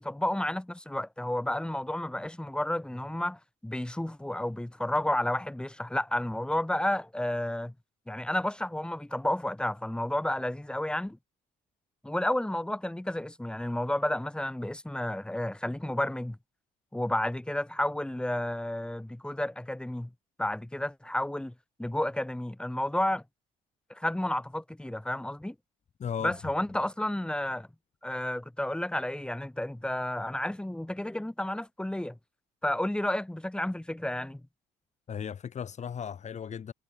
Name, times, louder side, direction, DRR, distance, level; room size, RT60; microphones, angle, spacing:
voice 1, 0.0-7.7 8.1-11.2 12.0-16.4 16.9-20.1 20.4-21.5 21.8-23.2 23.9-25.6 26.2-27.7 28.0-32.2 32.6-34.4, left 1 dB, 5° left, 5.6 m, -31 dB
voice 2, 26.0-26.3 35.1-36.7, left 8 dB, 45° left, 6.9 m, -36 dB
cardioid pair, 110°, 17 cm